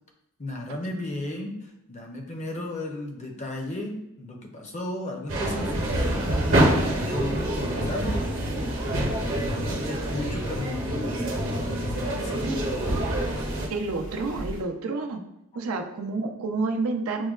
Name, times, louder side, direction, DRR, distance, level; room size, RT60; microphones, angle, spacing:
voice 1, 0.4-6.4 6.7-8.2 9.3-11.4 11.7-12.5, left 1 dB, 35° left, 2 dB, 0.5 m, -34 dB
sound 1, 5.3-13.7, right 1 dB, 65° right, 0.8 m, -26 dB
sound 2, 5.7-14.6, equal, 80° left, 1.1 m, -42 dB
voice 2, 13.7-15.2 15.5-17.3, right 3 dB, 80° right, 4 dB, 0.5 m, -29 dB
6.1 x 2.1 x 2.3 m, 0.84 s
head